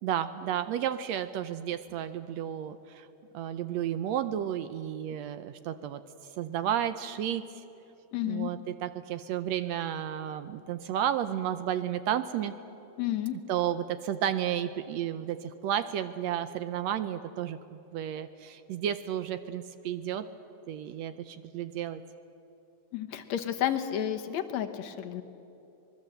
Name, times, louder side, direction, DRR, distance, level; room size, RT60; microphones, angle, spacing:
voice 1, 0.0-3.1 3.3-6.0 6.4-7.6 8.2-12.5 13.5-20.3 20.7-22.0, right 10 dB, 75° right, 11 dB, 1.8 m, -32 dB
voice 2, 8.1-8.5 13.0-13.4 22.9-25.2, left 11 dB, 70° left, 6 dB, 2.2 m, -31 dB
25.0 x 21.0 x 7.8 m, 2.9 s
omnidirectional pair, 3.4 m